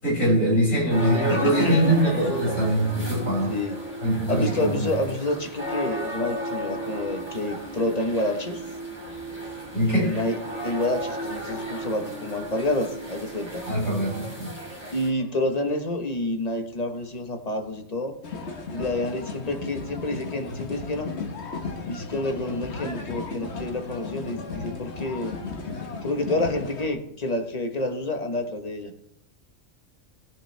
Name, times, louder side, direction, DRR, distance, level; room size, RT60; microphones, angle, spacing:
voice 1, 0.0-3.5 4.0-4.9 9.7-10.1 13.7-14.5, right 1 dB, 75° left, -5 dB, 6.7 m, -23 dB
sound 1, 0.9-15.1, right 1 dB, 10° right, 3.7 m, -34 dB
voice 2, 1.3-1.9 3.2-3.8 4.3-8.6 9.8-10.4 10.6-13.6 14.9-18.1 18.7-21.1 21.9-25.3 26.0-28.9, left 2 dB, 30° left, 4 dB, 1.3 m, -28 dB
sound 2, 18.2-26.9, left 4 dB, 55° left, 1.4 m, -35 dB
17.5 x 9.9 x 3.4 m, 0.76 s
omnidirectional pair, 1.4 m